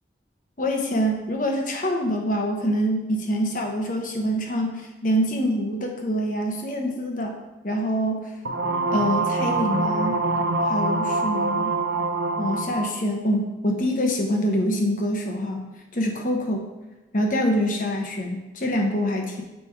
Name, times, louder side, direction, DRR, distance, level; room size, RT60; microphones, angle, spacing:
voice 1, 0.6-7.4 7.6-8.2 8.9-10.2 10.7-11.8 12.4-16.6 17.1-19.4, equal, 45° left, 2 dB, 0.9 m, -25 dB
sound 1, 8.4-13.0, right 2 dB, 70° right, 0.7 m, -24 dB
8.8 x 3.4 x 4.6 m, 1.1 s
head